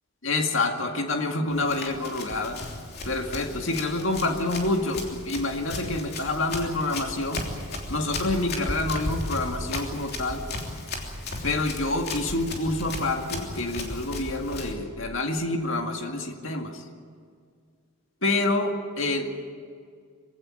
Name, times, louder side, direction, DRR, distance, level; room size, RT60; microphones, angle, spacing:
voice 1, 0.2-2.6 3.0-7.5 7.9-10.5 11.4-16.9 18.2-19.5, left 2 dB, 65° left, 3 dB, 2.1 m, -27 dB
Run, 1.5-14.7, left 2 dB, 45° left, 3.2 m, -35 dB
23.0 x 16.5 x 9.7 m, 2.1 s
head